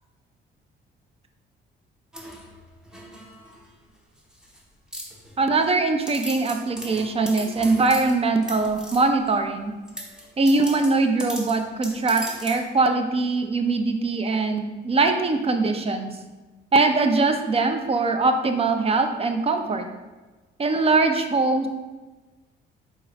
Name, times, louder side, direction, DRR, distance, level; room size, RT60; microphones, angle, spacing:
sound 1, 2.1-3.7 4.2-4.6 4.9-5.7 6.1-9.3 9.9-12.7, equal, 5° right, 0.8 m, -38 dB
voice 1, 5.4-9.7 10.4-16.2 16.7-19.9 20.6-21.7, right 3 dB, 30° right, 6 dB, 0.5 m, -22 dB
4.6 x 4.0 x 2.5 m, 1.2 s
cardioid pair, 90°, 20 cm